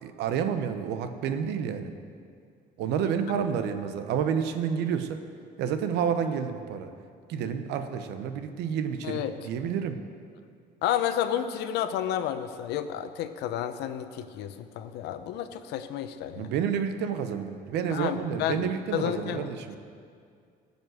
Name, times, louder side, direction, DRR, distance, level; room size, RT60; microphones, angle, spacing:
voice 1, 0.0-1.9 2.8-5.2 5.6-6.9 7.3-10.0 16.4-19.8, right 7 dB, 85° right, 9 dB, 0.9 m, -29 dB
voice 2, 9.0-9.3 10.8-16.5 17.9-19.5, left 10 dB, 85° left, 10 dB, 0.8 m, -31 dB
15.5 x 5.4 x 7.9 m, 2.2 s
cardioid pair, 110°, 17 cm